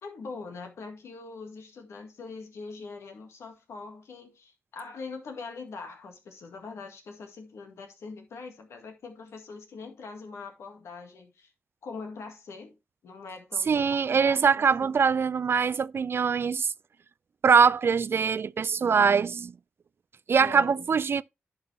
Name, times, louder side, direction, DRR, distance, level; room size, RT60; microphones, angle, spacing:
voice 1, 0.0-11.5 11.8-12.8 13.0-14.5 14.8-15.0 20.4-20.9, left 4 dB, 85° left, 1.9 m, -42 dB
voice 2, 13.7-16.7 17.4-19.5 20.3-21.2, right 6 dB, 60° right, 0.4 m, -23 dB
10.5 x 5.5 x 3.3 m
cardioid pair, 55°, 5 cm